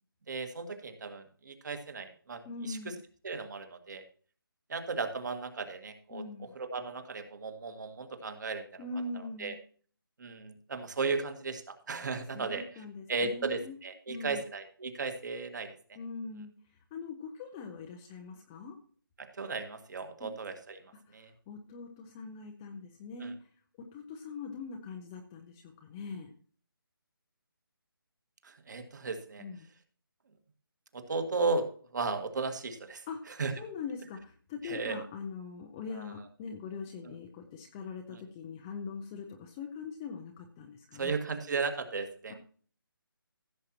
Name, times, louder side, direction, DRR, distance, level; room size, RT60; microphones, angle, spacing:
voice 1, 0.3-2.8 3.2-4.0 4.7-8.8 9.1-9.6 10.2-16.0 19.2-20.8 21.1-21.3 23.2-23.3 28.4-29.4 30.9-33.5 34.6-35.0 35.9-36.2 38.1-38.2 40.9-42.4, right 4 dB, 50° right, 7 dB, 1.9 m, -36 dB
voice 2, 2.4-3.0 6.1-6.5 8.8-9.5 12.3-13.8 14.1-14.4 16.0-16.5 16.9-18.8 20.2-20.3 21.1-21.2 21.5-23.3 23.9-26.3 29.4-29.7 33.1-33.2 33.6-41.1 42.3-42.4, left 4 dB, 10° left, 3 dB, 0.4 m, -42 dB
16.0 x 7.4 x 2.9 m, 0.43 s
figure-of-eight pair, 165°, 12 cm